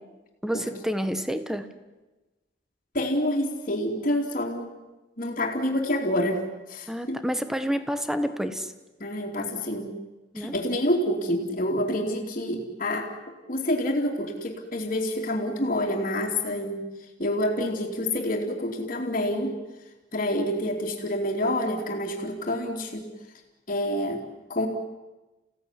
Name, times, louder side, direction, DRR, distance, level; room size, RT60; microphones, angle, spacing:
voice 1, 0.4-1.7 6.9-8.7 10.3-10.5, equal, 5° right, 10 dB, 1.4 m, -29 dB
voice 2, 2.9-4.7 5.2-7.3 9.0-9.9 10.3-16.8 17.2-19.6 20.1-23.1 23.7-24.2 24.5-24.7, left 1 dB, 45° left, -6 dB, 3.0 m, -28 dB
29.5 x 17.0 x 10.0 m, 1.1 s
head